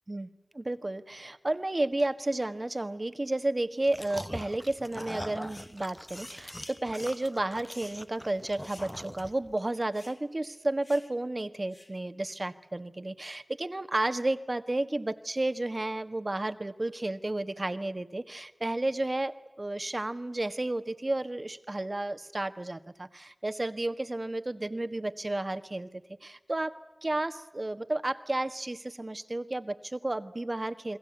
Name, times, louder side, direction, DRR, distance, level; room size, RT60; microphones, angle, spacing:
voice 1, 0.5-31.0, right 2 dB, 45° right, 11 dB, 1.5 m, -32 dB
sound 1, 3.8-9.6, equal, 5° left, 0.9 m, -42 dB
sound 2, 5.5-5.7 6.1-7.3 7.7-8.0 8.6-8.9 9.2-9.3 9.9-10.2 10.8-11.1 11.7-12.0, left 2 dB, 50° left, 3.7 m, -50 dB
29.5 x 22.5 x 8.3 m, 1.0 s
wide cardioid pair, 55°, 0 cm